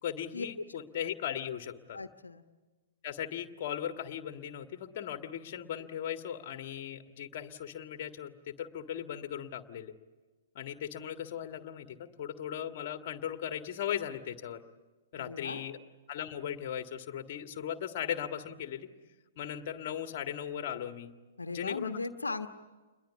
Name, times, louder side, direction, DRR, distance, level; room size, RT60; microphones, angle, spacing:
voice 1, 0.0-2.0 3.0-9.9 10.6-14.6 15.1-15.8 16.1-18.9 19.4-21.1 21.5-21.9, left 10 dB, 45° left, 7 dB, 1.7 m, -38 dB
voice 2, 1.9-2.4 15.1-15.6 21.4-22.5, left 3 dB, 75° left, 7 dB, 1.2 m, -37 dB
28.5 x 22.0 x 8.4 m, 1.3 s
figure-of-eight pair, 115°, 0 cm